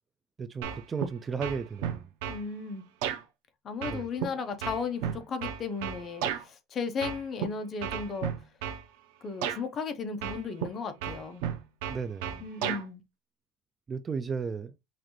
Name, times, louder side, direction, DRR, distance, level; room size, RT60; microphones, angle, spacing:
voice 1, 0.4-2.1 3.9-4.1 11.9-12.5 13.9-14.7, right 5 dB, 20° right, 0.3 m, -34 dB
sound 1, 0.6-1.1 1.4-2.4 3.0-3.2 3.8-6.4 7.0-7.5 7.8-8.8 9.4-9.6 10.2-10.7 11.0-12.8, right 9 dB, 85° right, 0.9 m, -33 dB
voice 2, 2.3-2.9 3.6-8.3 9.2-11.4 12.4-13.0, left 5 dB, 30° left, 0.8 m, -35 dB
5.8 x 2.6 x 3.0 m
cardioid pair, 150°, 0 cm